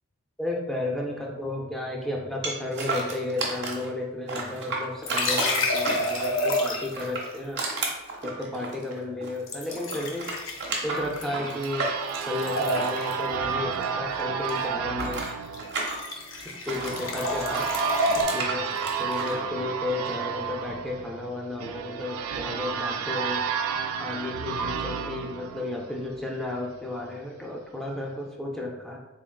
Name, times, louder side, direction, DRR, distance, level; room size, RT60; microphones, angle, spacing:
voice 1, 0.4-7.6 8.2-10.3 10.8-11.9 12.3-15.3 16.1-16.2 16.7-17.7 18.1-18.7 19.0-23.5 24.0-29.0, left 2 dB, ahead, -2 dB, 0.4 m, -33 dB
sound 1, 2.4-3.9 4.3-6.4 6.9-9.4 9.7-13.8 14.1-17.0 17.5-19.4, right 3 dB, 55° right, 0.9 m, -32 dB
sound 2, 5.0-7.1 9.5-11.8 12.1-13.3 15.0-15.3 15.5-18.2, left 1 dB, 65° left, 0.6 m, -29 dB
sound 3, 10.6-26.3, right 6 dB, 85° right, 0.3 m, -32 dB
3.6 x 3.6 x 2.2 m, 1.0 s
head